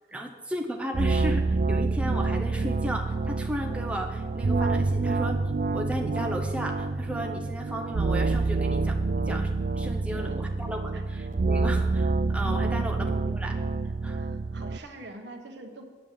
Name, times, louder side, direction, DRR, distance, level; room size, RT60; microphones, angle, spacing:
voice 1, 0.1-5.4 5.7-13.6 14.0-14.2, equal, 5° right, 1 dB, 0.7 m, -35 dB
sound 1, 0.9-14.8, right 3 dB, 45° right, 0.4 m, -27 dB
voice 2, 14.2-16.0, right 1 dB, 80° right, 3 dB, 1.3 m, -45 dB
9.1 x 6.5 x 7.4 m, 1.5 s
head